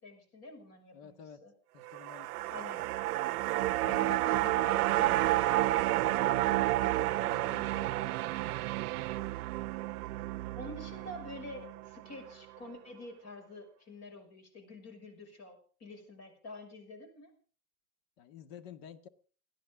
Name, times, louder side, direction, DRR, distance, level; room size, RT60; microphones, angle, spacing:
voice 1, 0.0-1.5 2.5-2.9 3.8-8.2 10.5-17.4, left 2 dB, 35° left, 6 dB, 6.0 m, -48 dB
voice 2, 0.9-1.4 1.7-2.6 18.2-19.1, left 8 dB, 55° left, 10 dB, 1.9 m, -51 dB
sound 1, 1.8-12.3 12.6-12.7, right 16 dB, 70° right, 0.7 m, -31 dB
29.5 x 10.5 x 3.8 m, 0.39 s
hypercardioid pair, 130°, 47 cm